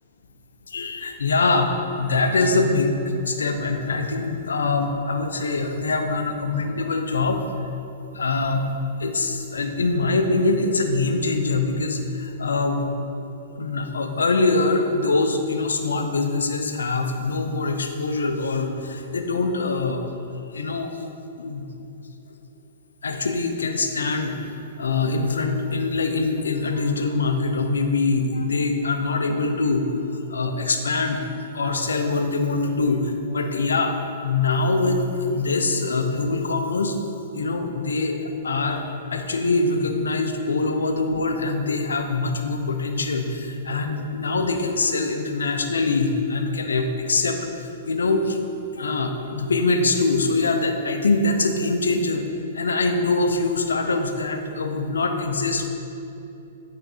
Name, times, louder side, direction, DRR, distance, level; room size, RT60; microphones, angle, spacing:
voice 1, 0.7-3.0 3.2-7.4 8.0-8.7 9.0-12.9 13.5-20.1 20.5-21.1 21.4-21.7 23.0-24.5 24.8-31.2 31.5-37.0 37.3-48.4 48.7-52.3 52.5-55.7, left 3 dB, 85° left, 6 dB, 0.6 m, -23 dB
9.0 x 3.9 x 4.2 m, 2.8 s
hypercardioid pair, 125°, 0 cm